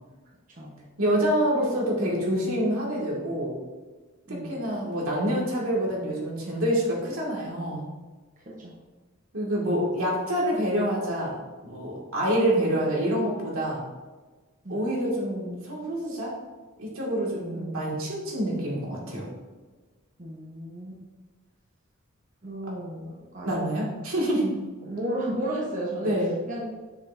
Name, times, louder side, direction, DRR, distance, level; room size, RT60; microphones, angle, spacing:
voice 1, 1.0-3.5 4.3-7.9 9.3-13.8 14.7-16.3 16.8-19.3 23.4-24.5 26.0-26.3, equal, 85° right, -4 dB, 2.0 m, -27 dB
voice 2, 4.3-4.6 8.4-8.7 14.6-14.8 17.5-17.9 20.2-21.0 22.4-23.7 24.2-24.3 24.8-26.1 26.5-26.7, right 1 dB, 35° right, -4 dB, 1.0 m, -34 dB
7.0 x 6.2 x 2.6 m, 1.3 s
head